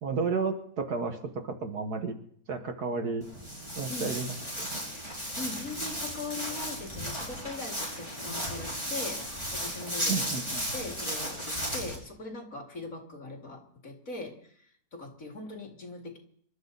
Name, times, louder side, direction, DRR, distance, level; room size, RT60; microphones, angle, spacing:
voice 1, 0.0-1.2 1.4-2.2 2.5-3.2 3.8-4.8 10.1-10.7, right 4 dB, 55° right, 5 dB, 1.8 m, -32 dB
Walk footsteps, 3.2-12.0, equal, 15° right, 4.7 m, -35 dB
voice 2, 5.4-9.2 9.5-16.2, left 3 dB, 45° left, 2 dB, 2.8 m, -41 dB
27.0 x 12.5 x 4.1 m, 0.63 s
omnidirectional pair, 2.0 m